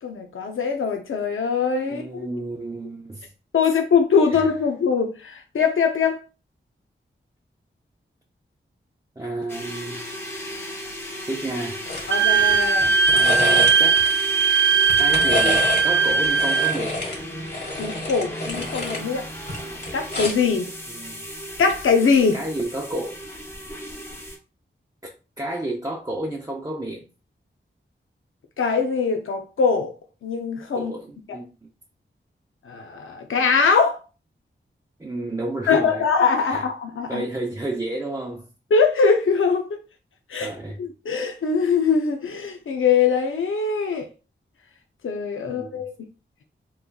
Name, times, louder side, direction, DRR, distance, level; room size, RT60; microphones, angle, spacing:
voice 1, 0.0-2.0 3.5-6.2 12.1-12.9 17.8-19.3 19.9-20.7 21.6-22.4 28.6-29.9 30.2-30.9 32.7-34.0 35.7-37.2 38.7-39.8 40.3-40.5 40.8-44.1 45.0-45.9, left 5 dB, 85° left, 0.5 m, -22 dB
voice 2, 1.9-3.3 4.3-4.5 9.2-10.0 11.3-11.8 13.1-14.0 15.0-17.1 20.9-21.2 22.3-23.2 25.0-25.1 25.4-27.0 30.7-31.7 35.0-36.0 36.5-36.6 37.1-38.5 40.4-40.8 45.4-45.9, right 1 dB, 15° right, 0.6 m, -31 dB
sound 1, 9.5-24.4, equal, 10° left, 1.1 m, -35 dB
sound 2, 11.9-12.1 12.4-14.1 14.7-15.9 16.2-19.0 19.4-20.5 21.7-21.9, left 2 dB, 60° left, 1.3 m, -29 dB
Wind instrument woodwind instrument, 12.1-16.8, right 5 dB, 65° right, 0.5 m, -19 dB
3.7 x 3.1 x 2.2 m
wide cardioid pair, 95°, 20 cm